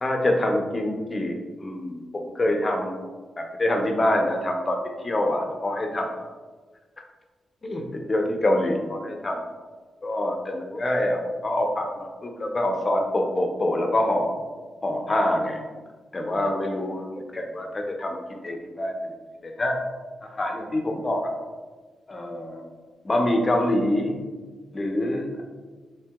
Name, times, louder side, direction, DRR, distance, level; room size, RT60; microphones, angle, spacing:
voice 1, 0.0-3.0 3.4-4.8 5.0-6.3 7.6-9.4 10.0-14.4 14.8-15.6 16.1-18.9 19.4-19.8 20.2-21.3 22.1-22.7 23.0-24.2 24.7-25.4, left 1 dB, 40° left, 2 dB, 0.5 m, -25 dB
3.1 x 2.7 x 2.2 m, 1.3 s
cardioid pair, 60°, 0 cm